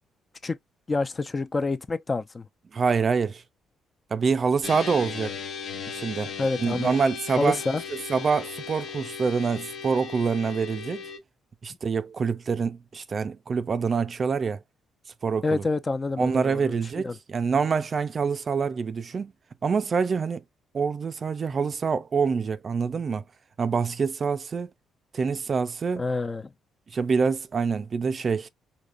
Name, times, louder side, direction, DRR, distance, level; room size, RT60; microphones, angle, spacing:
voice 1, 0.9-2.5 6.4-6.9 7.4-7.8 15.4-16.8 17.0-17.1 26.0-26.5, left 3 dB, 30° left, 0.6 m, -27 dB
voice 2, 2.7-3.4 4.1-5.3 5.9-6.3 6.6-7.6 8.1-11.0 11.6-14.6 15.2-15.6 16.2-19.3 19.6-20.4 20.7-23.2 23.6-24.7 25.1-26.1 26.9-28.5, right 5 dB, 40° right, 0.5 m, -26 dB
sound 1, 4.6-11.2, left 6 dB, 65° left, 0.9 m, -37 dB
4.9 x 2.7 x 2.5 m
cardioid pair, 90°, 0 cm